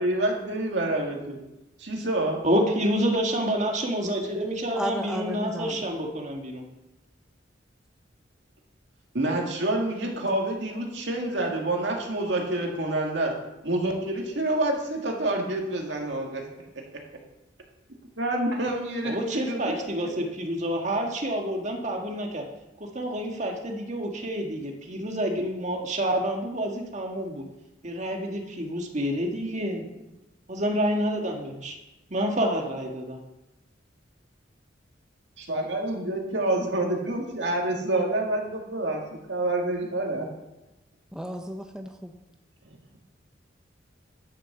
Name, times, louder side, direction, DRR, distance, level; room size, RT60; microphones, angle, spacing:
voice 1, 0.0-1.4 1.8-2.4 9.1-13.3 13.6-16.5 16.9-17.0 18.2-19.7 35.4-39.0 39.3-40.3 42.7-43.0, right 1 dB, 70° right, 1 dB, 2.1 m, -27 dB
voice 2, 2.4-6.6 19.0-22.4 22.8-27.4 27.8-29.8 30.5-31.8 32.1-33.2, equal, 40° right, 1 dB, 1.7 m, -28 dB
voice 3, 4.7-5.8 41.1-42.2, right 1 dB, 5° right, 4 dB, 0.6 m, -33 dB
11.0 x 6.2 x 6.9 m, 0.96 s
head